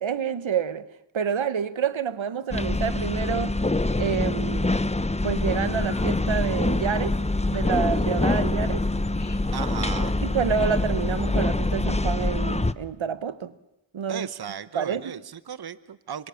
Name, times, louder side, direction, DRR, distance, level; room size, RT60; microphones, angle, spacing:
voice 1, 0.0-0.9 1.1-3.6 4.0-4.8 5.2-7.2 7.5-8.8 10.2-13.5 13.9-14.3 14.7-15.2, right 7 dB, 85° right, 1.2 m, -28 dB
sound 1, 2.5-12.7, left 2 dB, 15° left, 0.9 m, -25 dB
Chirp tweet, 5.6-11.5, left 4 dB, 55° left, 2.2 m, -49 dB
voice 2, 9.5-10.2 14.1-16.3, right 8 dB, 55° right, 0.9 m, -35 dB
27.0 x 26.0 x 7.1 m
wide cardioid pair, 65°, 46 cm